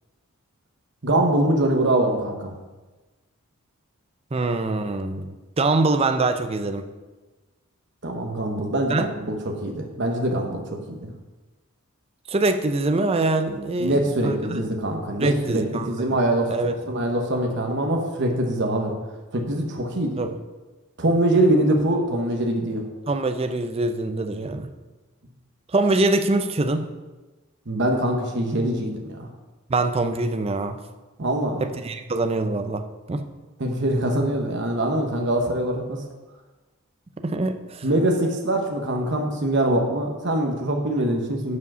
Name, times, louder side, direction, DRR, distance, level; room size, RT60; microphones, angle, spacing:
voice 1, 1.0-2.5 8.0-10.6 10.9-11.1 13.8-18.9 19.3-20.2 21.0-22.8 27.7-29.3 31.2-31.6 33.6-36.0 37.8-41.6, right 1 dB, 55° right, 2 dB, 1.0 m, -23 dB
voice 2, 4.3-6.9 8.9-9.1 12.3-14.6 15.2-15.9 16.5-16.7 20.2-20.4 23.1-24.7 25.7-26.9 29.7-30.8 31.6-33.3 37.2-37.9, right 2 dB, 25° right, 8 dB, 0.5 m, -24 dB
8.3 x 4.9 x 6.0 m, 1.2 s
head